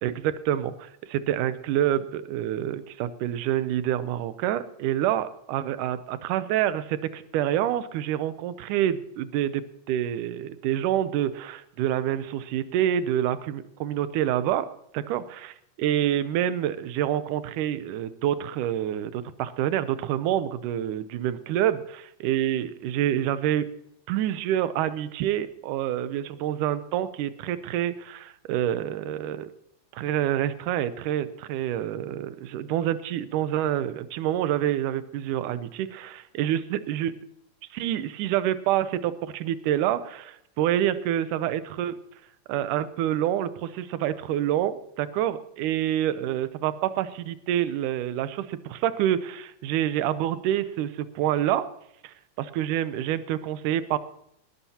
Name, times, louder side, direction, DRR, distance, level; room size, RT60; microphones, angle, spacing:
voice 1, 0.0-14.7 14.9-15.2 15.8-23.7 24.1-29.5 29.9-37.1 37.7-41.9 42.5-51.7 52.0-54.0, right 11 dB, 85° right, 13 dB, 2.3 m, -27 dB
20.0 x 13.0 x 2.9 m, 0.76 s
omnidirectional pair, 3.6 m